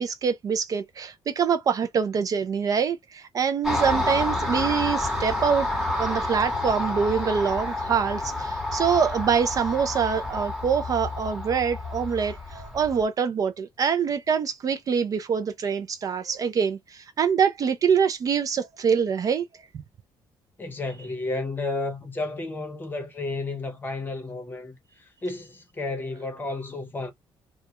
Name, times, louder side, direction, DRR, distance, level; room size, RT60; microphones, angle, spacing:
voice 1, 0.0-5.7 6.0-19.5 19.7-19.8, right 6 dB, 40° right, 0.4 m, -25 dB
Car passing by, 3.6-13.0, left 2 dB, ahead, 1.0 m, -29 dB
voice 2, 20.6-27.1, left 2 dB, 20° left, 0.8 m, -32 dB
2.3 x 2.1 x 2.8 m
cardioid pair, 130°, 10 cm